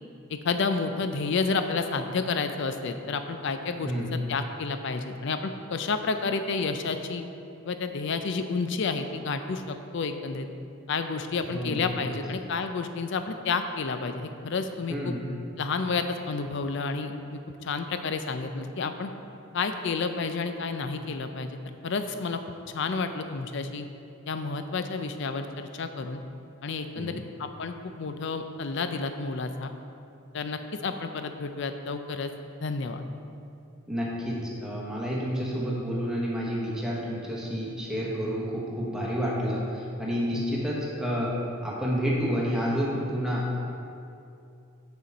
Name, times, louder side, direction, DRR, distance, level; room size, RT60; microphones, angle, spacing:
voice 1, 0.3-7.2 7.7-10.5 10.9-15.1 15.6-19.1 19.5-21.6 21.8-22.4 22.7-23.9 24.3-26.2 26.6-29.7 30.3-32.3 32.6-33.0 40.3-40.4, left 4 dB, 55° left, 8 dB, 0.4 m, -30 dB
voice 2, 3.8-4.2 11.5-11.9 14.9-15.3 27.0-27.2 33.9-41.3 41.6-43.5, equal, 5° right, -5 dB, 1.1 m, -29 dB
6.8 x 6.3 x 4.1 m, 2.6 s
head